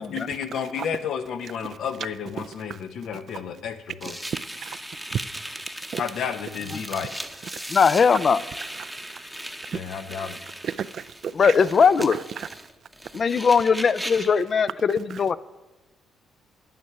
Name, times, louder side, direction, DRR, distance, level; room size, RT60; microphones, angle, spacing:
voice 1, 0.0-4.2 6.0-7.1 9.7-10.4, left 7 dB, 75° left, 0.9 m, -31 dB
voice 2, 2.4-2.8 4.0-4.1 4.6-4.8 5.1-5.2 5.9-6.0 8.8-8.9 9.7-9.8 10.6-11.5 12.1-12.5, right 8 dB, 60° right, 0.4 m, -32 dB
sound 1, 4.0-14.4, equal, ahead, 0.8 m, -38 dB
voice 3, 7.7-8.4 11.4-12.2 13.1-15.4, left 6 dB, 45° left, 0.4 m, -20 dB
9.5 x 9.4 x 5.8 m
cardioid pair, 90°, 0 cm